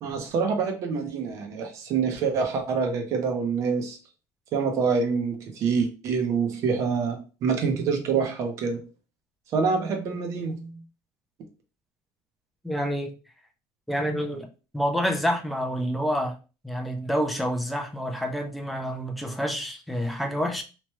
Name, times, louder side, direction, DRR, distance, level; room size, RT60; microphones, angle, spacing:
voice 1, 0.0-4.0 4.5-8.8 9.5-10.8, right 5 dB, 40° right, 0.6 m, -26 dB
voice 2, 12.6-13.1 13.9-14.5 14.7-16.4 16.6-20.6, equal, ahead, 0.3 m, -28 dB
3.0 x 2.2 x 2.9 m
cardioid pair, 175°, 9 cm